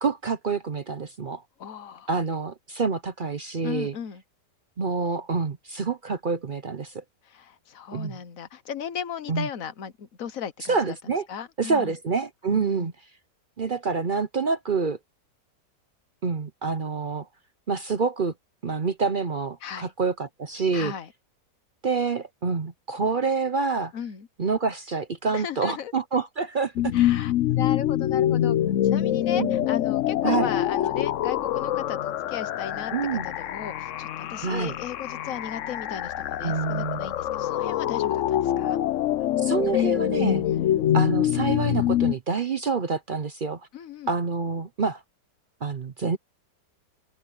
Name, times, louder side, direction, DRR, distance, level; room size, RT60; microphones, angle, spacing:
voice 1, 0.0-1.4 2.1-4.0 4.8-7.0 7.9-8.2 9.3-9.5 10.7-11.3 11.6-12.9 13.6-15.0 16.2-17.3 17.7-18.3 18.6-20.9 21.8-23.9 24.4-26.9 29.4-29.7 30.2-30.5 32.9-33.3 34.4-34.7 36.4-37.1 39.4-40.4 40.9-43.6 44.1-45.0 45.6-46.2, right 4 dB, 55° right, 0.5 m, -27 dB
voice 2, 1.6-2.1 3.6-4.2 7.3-11.0 11.3-11.9 12.5-12.9 19.6-19.9 20.7-21.1 23.9-24.3 25.3-25.9 26.9-28.6 28.8-38.8 40.4-40.6 43.7-44.1, left 8 dB, 55° left, 1.4 m, -36 dB
sound 1, 26.8-42.1, left 12 dB, 70° left, 0.7 m, -25 dB
open air
omnidirectional pair, 1.9 m